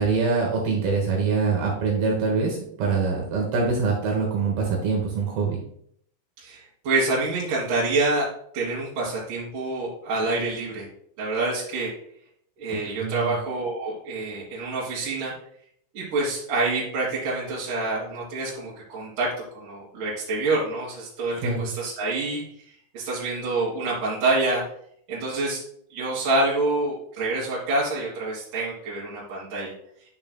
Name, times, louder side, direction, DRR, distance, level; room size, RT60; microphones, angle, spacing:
voice 1, 0.0-5.6 12.7-13.3 21.4-21.7, right 4 dB, 70° right, 0 dB, 2.3 m, -24 dB
voice 2, 6.4-8.3 8.5-10.9 11.2-11.9 12.6-15.3 15.9-22.4 22.9-24.6 25.1-25.6 25.9-29.7, right 2 dB, 55° right, -7 dB, 2.7 m, -27 dB
10.5 x 5.5 x 2.3 m, 0.66 s
omnidirectional pair, 5.6 m